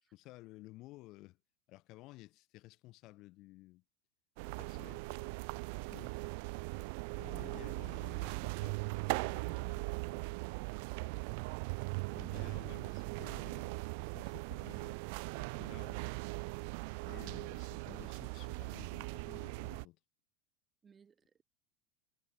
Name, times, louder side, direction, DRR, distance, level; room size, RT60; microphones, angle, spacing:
voice 1, 0.1-1.4 1.7-3.8 4.4-5.2 5.9-6.1 7.2-10.2 11.0-11.3 12.1-13.8 14.1-15.0 15.4-16.2 16.9-20.0, left 19 dB, 40° left, 3.6 m, -55 dB
sound 1, 4.4-19.8, right 31 dB, 55° right, 0.5 m, -40 dB
voice 2, 20.8-21.5, right 6 dB, 15° right, 5.0 m, -64 dB
supercardioid pair, 170°, 0 cm